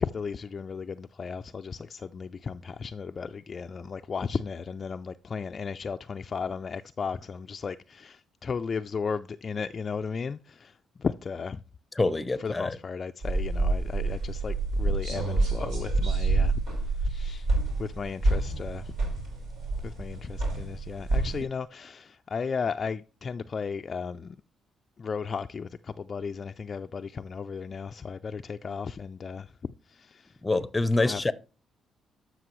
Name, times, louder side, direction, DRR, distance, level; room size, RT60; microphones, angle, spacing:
voice 1, 0.0-11.6 12.4-16.6 16.9-17.5 17.8-19.0 19.8-24.4 25.0-29.5 29.9-30.4 30.9-31.3, left 5 dB, 40° left, 0.3 m, -35 dB
voice 2, 12.0-12.8 30.4-31.3, left 2 dB, 15° left, 0.7 m, -26 dB
sound 1, 13.2-21.4, right 2 dB, 85° right, 5.5 m, -28 dB
12.5 x 6.0 x 3.1 m
cardioid pair, 90°, 0 cm